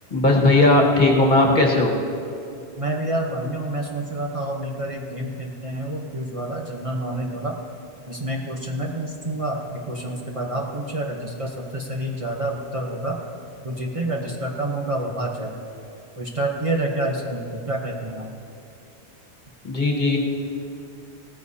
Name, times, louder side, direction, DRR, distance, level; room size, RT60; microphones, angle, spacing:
voice 1, 0.1-1.9 19.6-20.2, left 2 dB, 45° left, -1 dB, 1.7 m, -17 dB
voice 2, 2.8-7.6 8.1-13.2 13.6-15.5 16.2-18.3, right 1 dB, 30° right, -1 dB, 1.0 m, -28 dB
17.5 x 14.5 x 2.8 m, 2.7 s
omnidirectional pair, 1.1 m